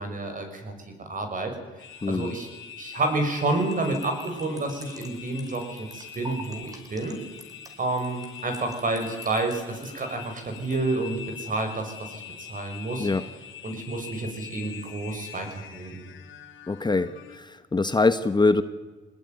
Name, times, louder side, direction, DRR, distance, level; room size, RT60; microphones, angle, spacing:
voice 1, 0.0-1.5 2.1-2.5 2.8-7.2 7.8-13.1 13.6-16.1, right 2 dB, 40° right, 5 dB, 6.6 m, -29 dB
sound 1, 1.8-17.4, left 8 dB, 75° left, 2.9 m, -44 dB
voice 2, 2.0-2.3 13.0-13.2 16.7-17.1 17.4-18.6, left 3 dB, 20° left, 11 dB, 1.2 m, -23 dB
sound 2, 3.6-10.8, right 1 dB, 20° right, 4.9 m, -47 dB
22.5 x 19.5 x 9.5 m, 1.3 s
cardioid pair, 90°, 20 cm